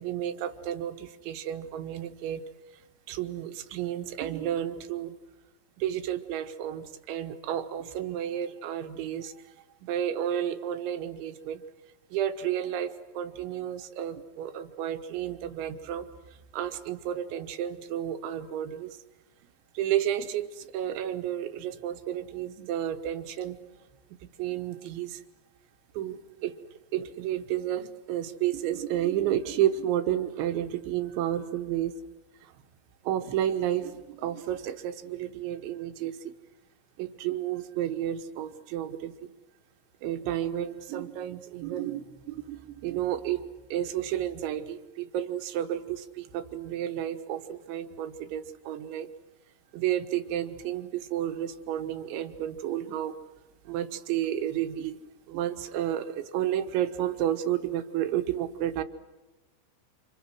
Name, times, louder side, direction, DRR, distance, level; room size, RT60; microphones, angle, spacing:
voice 1, 0.0-2.4 3.1-5.2 5.8-9.3 9.8-11.6 12.1-16.1 16.5-19.0 19.8-23.6 24.4-25.2 26.0-26.6 26.9-31.9 33.1-36.2 37.0-39.3 40.0-43.4 43.7-49.1 49.7-53.1 53.7-55.0 55.3-58.8, right 11 dB, 80° right, 8 dB, 3.6 m, -31 dB
29.5 x 27.5 x 6.3 m, 1.2 s
omnidirectional pair, 5.3 m